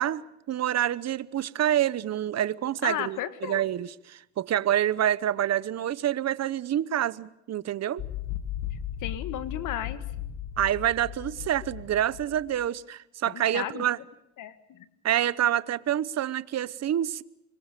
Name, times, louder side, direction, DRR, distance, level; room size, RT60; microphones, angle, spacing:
voice 1, 0.0-8.0 10.6-14.0 15.0-17.2, right 11 dB, 60° right, 1.0 m, -27 dB
voice 2, 2.8-3.6 9.0-10.0 13.3-13.9 14.4-14.9, left 11 dB, 90° left, 1.9 m, -34 dB
sound 1, 8.0-12.7, left 11 dB, 60° left, 1.3 m, -36 dB
25.5 x 22.5 x 6.8 m
cardioid pair, 90°, 30 cm